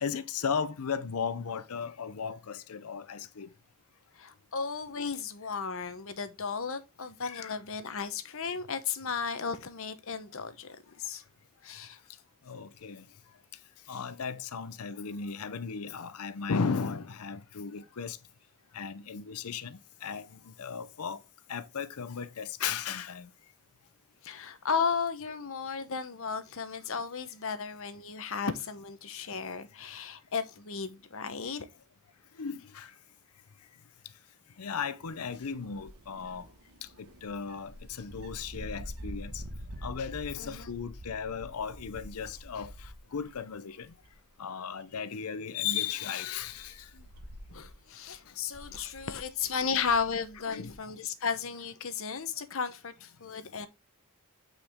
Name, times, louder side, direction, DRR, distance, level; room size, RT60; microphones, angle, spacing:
voice 1, 0.0-3.5 7.2-7.6 12.5-13.0 13.9-18.2 18.7-20.2 20.6-21.2 21.5-23.3 32.4-32.9 34.6-36.4 37.2-37.7 38.0-39.4 39.8-42.7 43.1-43.9 44.4-46.7 50.5-50.7, left 6 dB, 90° left, 0.6 m, -35 dB
voice 2, 4.2-10.7 11.0-11.2 11.6-12.0 24.2-31.7 40.4-40.7 46.9-47.1 47.5-53.7, left 6 dB, 65° left, 1.0 m, -34 dB
sound 1, 35.0-43.5 43.8-44.3 44.8-44.9 45.8-50.7, equal, 80° right, 1.3 m, -47 dB
8.6 x 5.0 x 3.5 m
head